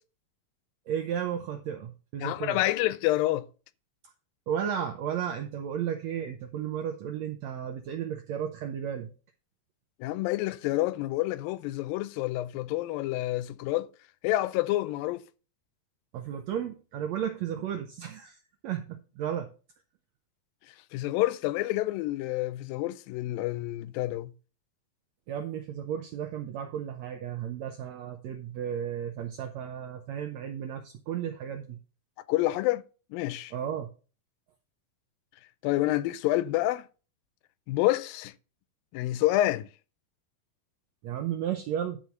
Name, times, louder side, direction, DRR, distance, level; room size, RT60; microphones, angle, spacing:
voice 1, 0.9-2.6 4.5-9.1 16.1-18.4 18.6-19.5 25.3-31.8 33.5-33.9 41.0-42.0, right 9 dB, 80° right, 1.6 m, -34 dB
voice 2, 2.2-3.5 10.0-13.9 14.2-15.2 20.9-24.3 32.3-32.8 33.1-33.5 35.6-36.8 37.7-38.3 38.9-39.7, left 16 dB, 85° left, 2.3 m, -28 dB
11.5 x 4.3 x 5.8 m
omnidirectional pair, 4.1 m